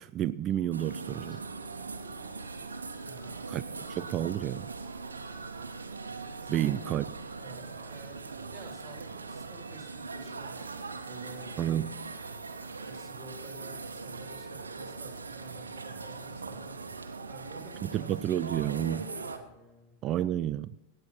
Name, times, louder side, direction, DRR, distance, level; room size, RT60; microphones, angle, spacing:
voice 1, 0.0-1.4 3.5-3.6 3.9-4.7 6.5-7.0 11.6-11.9 17.9-19.0 20.0-20.7, right 12 dB, 35° right, 14 dB, 0.4 m, -30 dB
sound 1, 0.7-19.4, right 4 dB, 75° right, 1.1 m, -41 dB
voice 2, 3.1-4.0 6.4-6.7 7.4-8.2 8.5-12.2 12.8-16.8 17.3-20.0, right 2 dB, 10° right, 1 dB, 3.4 m, -52 dB
17.5 x 8.0 x 4.3 m, 0.93 s
figure-of-eight pair, 90°, 0 cm